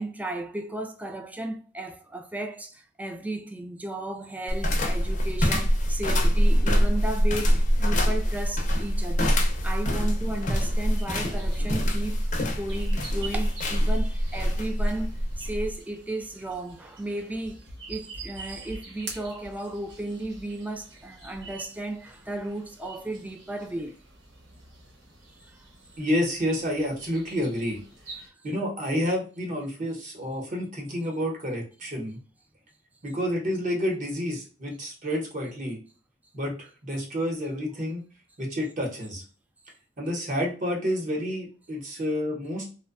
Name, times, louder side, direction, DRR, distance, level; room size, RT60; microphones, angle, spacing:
voice 1, 0.0-15.1 15.4-17.6 17.9-24.0 25.4-25.6, right 1 dB, 10° right, 0.3 m, -34 dB
sound 1, 4.5-15.7, equal, 45° left, 0.5 m, -24 dB
sound 2, 10.0-28.3, right 3 dB, 70° right, 0.9 m, -46 dB
voice 2, 26.0-27.8 28.4-32.2 33.0-35.8 36.3-38.0 38.4-39.2 40.0-42.7, equal, 45° right, 0.9 m, -29 dB
2.6 x 2.2 x 2.4 m
head